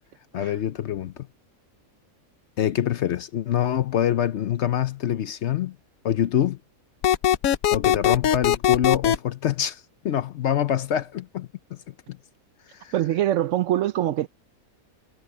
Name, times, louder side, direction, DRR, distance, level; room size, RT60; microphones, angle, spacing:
voice 1, 0.3-1.3 2.6-5.8 6.0-6.6 7.7-11.5 11.9-12.0 12.8-12.9, left 10 dB, 60° left, 0.8 m, -25 dB
sound 1, 7.0-9.2, left 10 dB, 75° left, 1.2 m, -20 dB
voice 2, 12.9-14.3, right 12 dB, 70° right, 0.8 m, -23 dB
omnidirectional pair, 1.5 m